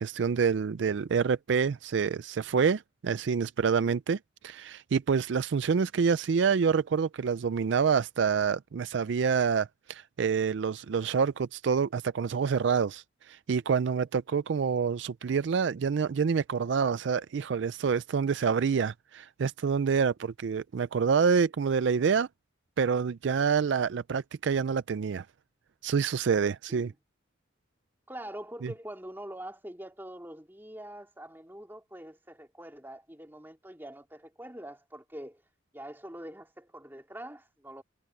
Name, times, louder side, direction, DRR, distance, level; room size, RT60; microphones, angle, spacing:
voice 1, 0.0-4.2 4.4-22.3 22.8-25.3 25.8-26.9 28.6-28.7, right 6 dB, 60° right, 0.4 m, -27 dB
voice 2, 28.1-35.4 35.7-37.8, right 1 dB, 10° right, 2.5 m, -44 dB
head